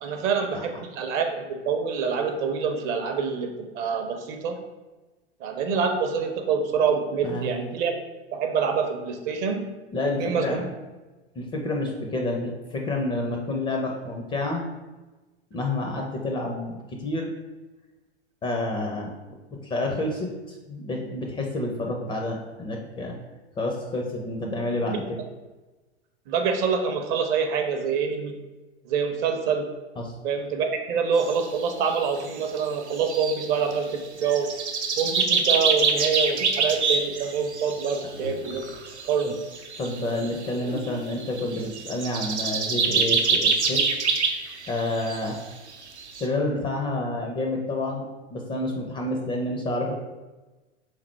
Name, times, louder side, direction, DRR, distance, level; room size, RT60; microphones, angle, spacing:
voice 1, 0.0-4.6 5.4-7.9 8.3-9.7 10.2-10.7 24.9-25.0 26.3-28.3 28.9-29.7 30.2-34.5 35.0-38.7 39.0-39.3, right 6 dB, 35° right, 5 dB, 0.5 m, -26 dB
voice 2, 7.2-7.6 9.9-10.7 11.4-14.6 15.5-17.3 18.4-19.1 19.6-23.2 23.6-25.2 30.0-30.1 39.2-39.3 39.8-43.9 44.7-45.4 46.2-48.0 48.3-49.9, left 2 dB, 15° left, 1 dB, 0.4 m, -29 dB
sound 1, 31.2-31.9 32.2-32.3 32.6-32.7 32.9-33.8 34.2-38.0 38.4-40.5 40.8-45.4 45.7-45.8 46.0-46.2, right 4 dB, 85° right, 0.6 m, -25 dB
sound 2, 36.6-36.9 38.1-38.9 40.2-41.2, left 2 dB, 90° left, 0.6 m, -40 dB
3.5 x 3.3 x 4.4 m, 1.2 s
figure-of-eight pair, 90°, 33 cm